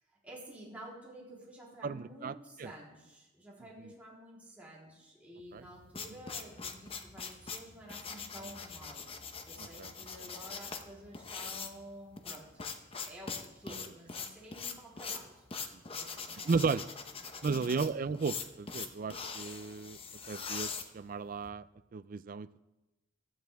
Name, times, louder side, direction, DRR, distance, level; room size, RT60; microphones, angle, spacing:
voice 1, 0.2-9.1 9.4-12.5 13.0-15.4 15.9-16.7, right 1 dB, 10° right, -6 dB, 3.6 m, -51 dB
voice 2, 1.8-2.3 2.6-2.7 3.8-3.9 5.5-5.6 9.6-9.9 16.4-16.8 17.4-20.0 20.3-21.6 21.9-22.6, right 4 dB, 45° right, 15 dB, 0.4 m, -34 dB
sound 1, 5.6-21.5, left 5 dB, 30° left, 0.9 m, -42 dB
16.0 x 12.5 x 3.5 m, 1.0 s
head